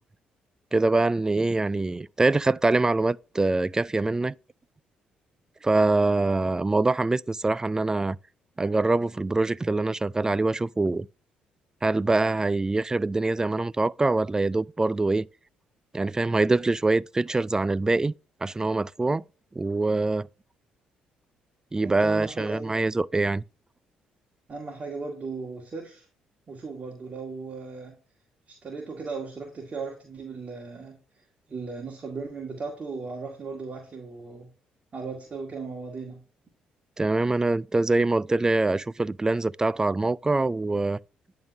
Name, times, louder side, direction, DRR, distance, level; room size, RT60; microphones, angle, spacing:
voice 1, 0.7-4.3 5.6-8.2 8.6-11.1 11.8-15.3 15.9-18.1 18.4-19.2 19.6-20.3 21.7-23.4 37.0-41.0, right 2 dB, 20° right, 0.3 m, -24 dB
voice 2, 21.8-22.8 24.5-26.1 26.5-27.9 28.5-31.0 31.5-34.5 34.9-36.2, right 4 dB, 40° right, 2.2 m, -37 dB
10.5 x 3.9 x 2.6 m
supercardioid pair, 60°, 3 cm